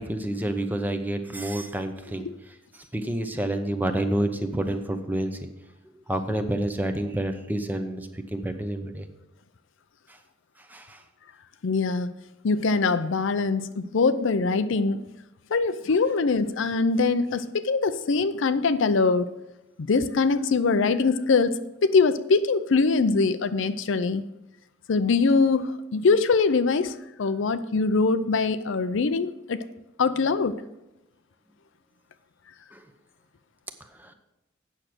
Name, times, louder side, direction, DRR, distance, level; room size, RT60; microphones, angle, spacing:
voice 1, 0.0-2.3 2.9-5.4 6.1-9.1 10.7-11.0 32.7-32.8 34.0-34.1, right 1 dB, 10° right, 0.8 m, -28 dB
voice 2, 11.6-12.1 12.4-15.0 15.5-19.3 19.8-24.2 24.9-29.6 30.0-30.6, left 4 dB, 65° left, 0.5 m, -23 dB
8.8 x 6.4 x 6.0 m
head